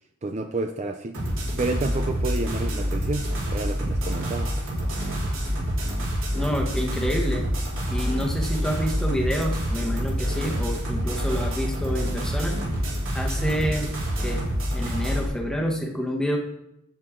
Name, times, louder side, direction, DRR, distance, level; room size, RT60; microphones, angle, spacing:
voice 1, 0.2-1.2 1.6-4.5, right 2 dB, 30° right, 6 dB, 0.5 m, -30 dB
sound 1, 1.1-15.3, equal, 65° right, 3.9 m, -27 dB
voice 2, 6.3-7.4 7.9-12.6 13.1-13.9 14.2-16.4, equal, 5° left, 0 dB, 1.3 m, -28 dB
10.5 x 8.6 x 3.7 m, 0.83 s
head